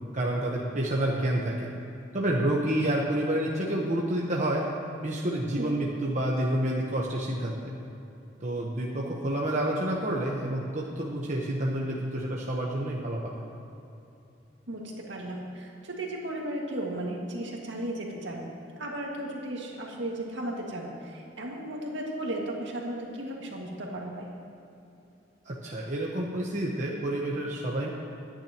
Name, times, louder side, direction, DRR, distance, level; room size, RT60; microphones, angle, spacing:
voice 1, 0.1-1.7 2.1-4.7 5.0-7.7 8.4-13.4 25.4-27.9, right 1 dB, 40° right, -3 dB, 1.2 m, -29 dB
voice 2, 14.7-18.5 18.8-24.3, right 1 dB, 65° right, -1 dB, 2.1 m, -35 dB
22.5 x 10.0 x 3.0 m, 2.8 s
head